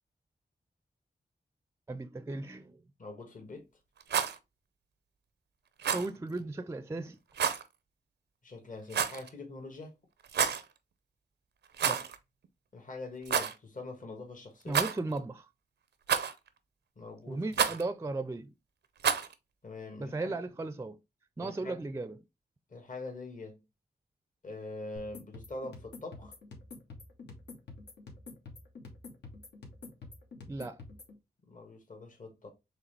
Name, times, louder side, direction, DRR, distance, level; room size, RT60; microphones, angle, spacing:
voice 1, 1.9-2.8 5.9-7.2 11.9-12.1 14.7-15.5 17.3-18.5 20.0-21.0 21.4-22.2 30.5-30.8, right 2 dB, 15° right, 0.4 m, -36 dB
voice 2, 3.0-3.7 8.4-9.9 12.7-14.8 17.0-17.4 19.6-20.3 21.4-21.9 22.7-23.6 24.4-26.3 31.4-32.5, left 2 dB, 50° left, 1.4 m, -44 dB
Rattle, 4.0-4.4 5.8-6.1 7.3-7.6 8.9-9.3 10.2-10.6 11.7-12.2 12.4-12.5 13.2-13.5 14.7-15.2 16.1-16.5 17.5-17.8 19.0-19.3, right 7 dB, 90° right, 0.6 m, -29 dB
sound 1, 25.0-31.2, left 3 dB, 85° left, 1.4 m, -48 dB
4.9 x 3.3 x 3.2 m
cardioid pair, 65°, 17 cm